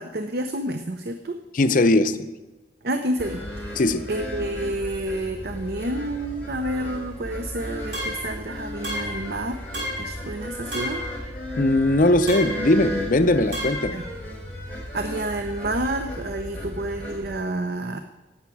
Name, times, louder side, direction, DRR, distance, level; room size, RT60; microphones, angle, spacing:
voice 1, 0.0-1.4 2.8-3.8 4.1-9.6 10.0-11.0 13.9-14.0 14.6-18.0, right 1 dB, 55° right, 7 dB, 0.6 m, -29 dB
voice 2, 1.5-2.3 3.8-4.1 11.6-14.0, left 2 dB, 45° left, 11 dB, 0.6 m, -20 dB
sound 1, 3.2-17.3, left 1 dB, 10° left, 4.2 m, -35 dB
sound 2, 7.9-8.4 8.8-9.3 9.7-10.2 10.7-11.2 12.3-12.7 13.5-14.0, equal, 85° right, 5.0 m, -31 dB
11.0 x 8.1 x 8.4 m, 1.1 s
head